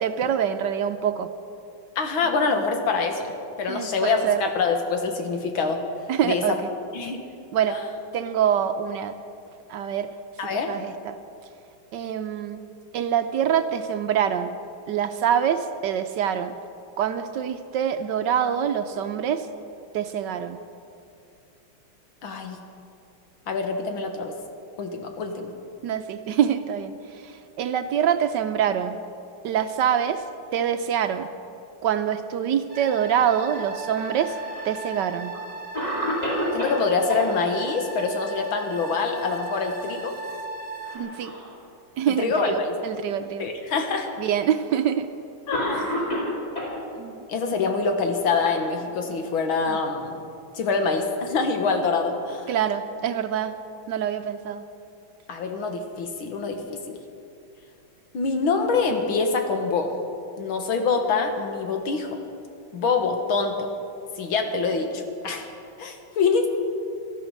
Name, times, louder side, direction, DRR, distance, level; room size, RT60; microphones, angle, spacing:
voice 1, 0.0-1.3 3.7-4.4 6.1-6.7 7.5-7.8 8.1-9.1 9.7-10.1 10.7-11.2 11.9-12.6 12.9-14.6 14.9-16.6 17.0-19.5 19.9-20.6 25.8-29.0 29.4-30.2 30.5-31.3 31.8-34.4 34.6-35.3 40.9-41.3 42.0-43.5 44.2-45.1 47.0-47.2 49.7-49.8 52.5-53.6 53.9-54.6, right 9 dB, 70° right, 9 dB, 1.1 m, -25 dB
voice 2, 2.0-5.8 6.2-6.6 6.9-7.2 7.7-7.9 10.4-10.8 22.2-22.6 23.5-24.3 24.8-25.5 36.5-40.1 42.2-42.8 43.4-44.1 45.5-46.0 47.3-50.1 50.5-52.5 55.3-57.0 58.1-59.9 60.4-62.2 62.7-63.7 64.2-65.5 65.8-66.5, left 4 dB, 80° left, 4 dB, 2.2 m, -25 dB
sound 1, 32.7-41.0, right 3 dB, 40° right, 1.9 m, -37 dB
Cough, 33.9-34.8 35.3-35.4 35.7-37.3 39.1-39.6 39.9-40.0 40.8-41.5 42.3-42.4 43.5-43.6 44.7-44.9 45.5-46.8 47.7-49.2, left 1 dB, 20° left, 3.9 m, -30 dB
18.5 x 13.0 x 5.2 m, 2.5 s
omnidirectional pair, 2.2 m